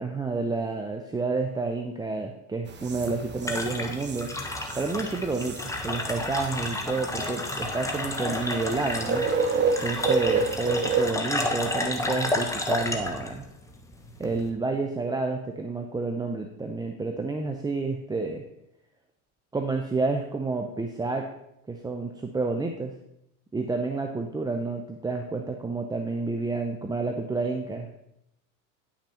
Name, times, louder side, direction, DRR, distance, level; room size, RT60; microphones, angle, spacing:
voice 1, 0.0-4.3 4.7-5.6 5.8-9.3 9.8-13.5 14.2-18.4 19.5-21.3 21.7-22.9 23.5-27.9, right 3 dB, 10° right, 4 dB, 0.6 m, -29 dB
sound 1, 2.7-11.1, right 4 dB, 25° right, 1.1 m, -30 dB
sound 2, 2.8-14.5, left 2 dB, 5° left, 1.2 m, -31 dB
9.9 x 6.3 x 4.3 m, 0.80 s
supercardioid pair, 110°, 43 cm